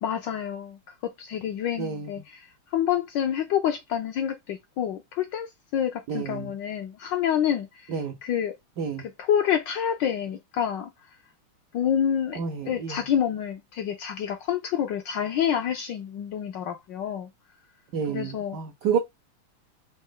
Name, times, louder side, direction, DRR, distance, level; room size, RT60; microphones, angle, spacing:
voice 1, 0.0-2.5 2.7-7.9 8.2-8.6 9.0-10.9 11.7-17.3 18.1-18.6, left 9 dB, 70° left, 1.1 m, -28 dB
voice 2, 1.8-2.1 6.1-6.5 7.9-8.2 8.8-9.1 12.4-13.0 17.9-19.0, right 6 dB, 75° right, 0.9 m, -29 dB
4.2 x 2.6 x 3.7 m
omnidirectional pair, 2.4 m